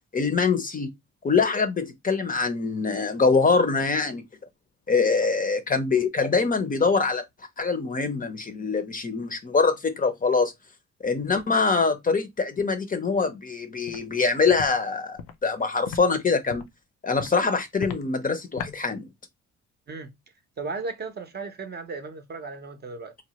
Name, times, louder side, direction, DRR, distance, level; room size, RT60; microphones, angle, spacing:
voice 1, 0.1-0.9 1.2-4.2 4.9-7.2 7.6-10.5 11.0-16.6 17.0-19.1, left 4 dB, 30° left, 0.6 m, -24 dB
Walk footsteps, 13.9-14.0 14.5-14.7 15.2-15.3 15.9-16.0 16.5-16.7 17.2-17.3 17.8-18.0 18.6-18.7, left 6 dB, 85° left, 0.6 m, -35 dB
voice 2, 20.6-23.2, right 4 dB, 35° right, 0.6 m, -35 dB
3.0 x 2.1 x 2.8 m
cardioid pair, 90°, 30 cm